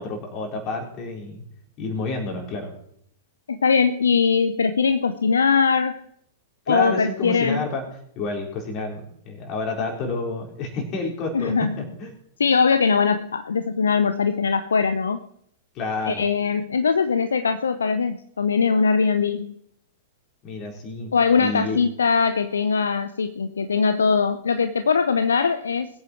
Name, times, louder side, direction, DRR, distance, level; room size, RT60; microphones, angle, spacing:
voice 1, 0.0-1.4 1.8-2.7 6.7-7.8 8.2-12.1 15.7-16.2 20.4-21.1 21.4-21.8, left 3 dB, 35° left, 0 dB, 4.5 m, -29 dB
voice 2, 3.5-6.0 6.7-7.7 11.3-11.7 12.4-15.2 16.1-19.6 21.1-25.9, left 5 dB, 70° left, 10 dB, 0.7 m, -21 dB
21.5 x 8.8 x 4.6 m, 0.69 s
figure-of-eight pair, 100°, 0 cm